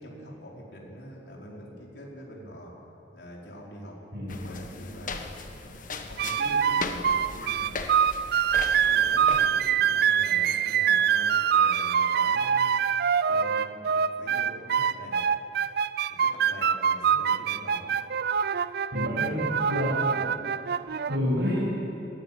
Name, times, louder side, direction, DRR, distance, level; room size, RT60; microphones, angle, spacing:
voice 1, 0.0-2.7 3.1-5.7 6.0-7.8 8.4-12.8 13.3-15.2 15.5-15.7 16.1-18.1, equal, 65° left, -3 dB, 4.9 m, -44 dB
sound 1, 4.3-9.5, left 4 dB, 50° left, 1.4 m, -38 dB
sound 2, 6.2-21.2, right 8 dB, 60° right, 0.5 m, -25 dB
voice 2, 18.9-20.4 21.1-21.7, left 1 dB, 85° right, -7 dB, 6.5 m, -29 dB
20.5 x 16.0 x 9.1 m, 2.8 s
head